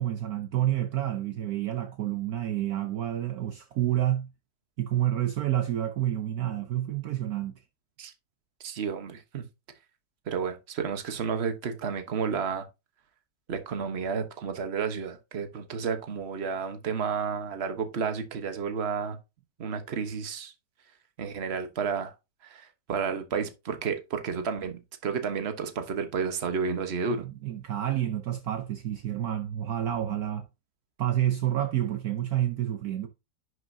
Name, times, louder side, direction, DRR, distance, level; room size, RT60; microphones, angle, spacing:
voice 1, 0.0-4.3 4.8-7.6 27.1-30.5 31.0-33.1, right 12 dB, 65° right, 1.2 m, -29 dB
voice 2, 8.6-9.4 10.3-12.6 13.5-19.2 19.6-20.5 21.2-22.1 22.4-27.3, right 6 dB, 40° right, 1.2 m, -31 dB
10.5 x 6.5 x 2.7 m
omnidirectional pair, 1.9 m